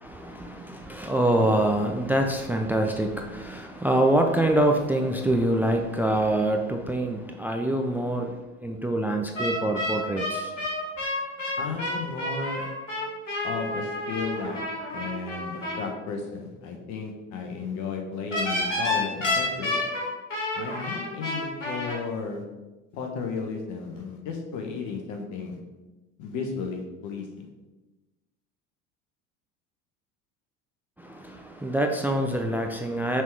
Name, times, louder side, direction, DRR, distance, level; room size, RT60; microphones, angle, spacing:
voice 1, 0.0-10.5 31.0-33.2, right 1 dB, 5° right, 3 dB, 0.5 m, -25 dB
sound 1, 9.3-15.8 18.3-22.0, left 2 dB, 90° left, 1.7 m, -29 dB
voice 2, 11.6-12.8 13.4-19.8 20.5-22.5 22.9-25.6 26.2-27.5, left 5 dB, 50° left, 3 dB, 1.3 m, -34 dB
5.9 x 3.7 x 4.8 m, 1.1 s
hypercardioid pair, 70°, 37 cm